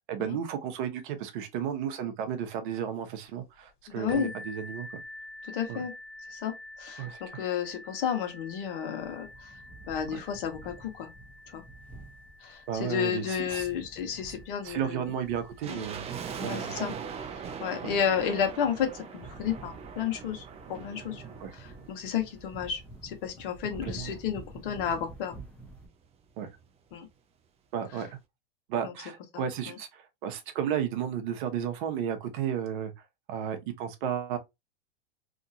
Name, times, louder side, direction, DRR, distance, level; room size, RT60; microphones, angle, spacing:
voice 1, 0.1-5.0 5.7-5.8 7.0-7.4 10.1-10.2 12.7-13.7 14.6-16.1 16.4-17.0 17.8-17.9 21.4-21.5 23.8-24.1 26.4-26.5 27.7-28.2 28.7-32.9 33.3-34.4, right 9 dB, 55° right, 0.8 m, -33 dB
voice 2, 3.9-4.3 5.4-5.9 6.3-9.5 9.9-11.1 11.5-11.6 12.4-15.1 15.7-15.8 16.4-16.9 17.6-21.2 21.5-25.3 26.9-27.1 27.9-28.0 28.8-28.9 29.3-29.7, left 8 dB, 60° left, 1.1 m, -32 dB
sound 1, 4.1-19.6 20.4-20.5 21.0-21.1, left 1 dB, 40° left, 1.3 m, -49 dB
sound 2, 9.0-25.9, right 2 dB, 5° left, 0.8 m, -50 dB
sound 3, 15.6-22.9 23.1-23.2 23.9-25.7 26.0-26.1 26.3-26.6 27.1-27.2, right 6 dB, 20° right, 0.5 m, -42 dB
2.9 x 2.5 x 2.6 m
hypercardioid pair, 115°, 30 cm